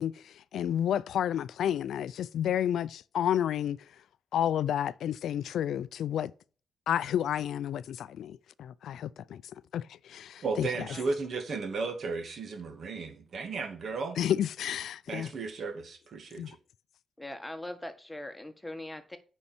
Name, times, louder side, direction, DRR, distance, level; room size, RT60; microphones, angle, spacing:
voice 1, 0.0-3.8 4.3-6.3 6.9-9.4 9.7-10.7 14.2-15.3 16.4-16.5, left 10 dB, 85° left, 0.4 m, -31 dB
voice 2, 10.4-14.2 15.1-16.6, right 4 dB, 60° right, 2.2 m, -34 dB
voice 3, 17.2-19.2, left 1 dB, 10° left, 1.5 m, -41 dB
8.7 x 5.3 x 4.4 m
cardioid pair, 90°, 0 cm